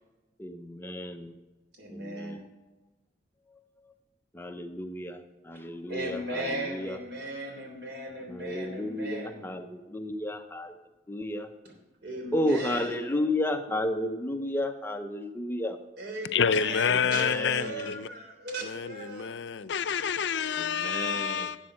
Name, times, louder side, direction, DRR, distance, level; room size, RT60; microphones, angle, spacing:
voice 1, 0.4-1.3 1.9-2.4 3.5-3.9 4.3-7.0 8.3-10.8 11.1-11.5 12.3-15.8 16.9-17.9 20.5-21.5, left 1 dB, 15° left, 0.6 m, -33 dB
voice 2, 1.7-2.5 5.9-9.4 12.0-13.0 16.0-19.3 20.4-21.2, right 1 dB, 65° right, 3.3 m, -38 dB
voice 3, 16.3-18.1 18.6-21.6, left 6 dB, 75° left, 0.5 m, -28 dB
11.5 x 7.7 x 6.3 m
head